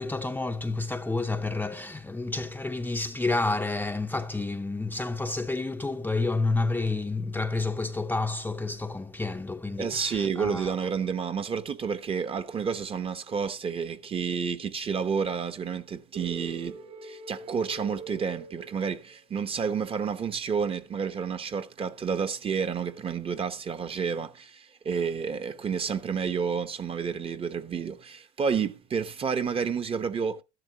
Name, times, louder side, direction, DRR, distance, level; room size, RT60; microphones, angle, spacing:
voice 1, 0.0-10.7, left 3 dB, 10° left, 0.6 m, -30 dB
voice 2, 9.8-30.4, right 6 dB, 25° right, 0.9 m, -30 dB
sound 1, 16.1-19.3, right 3 dB, 85° right, 3.3 m, -43 dB
13.0 x 11.0 x 2.8 m
supercardioid pair, 105°, 21 cm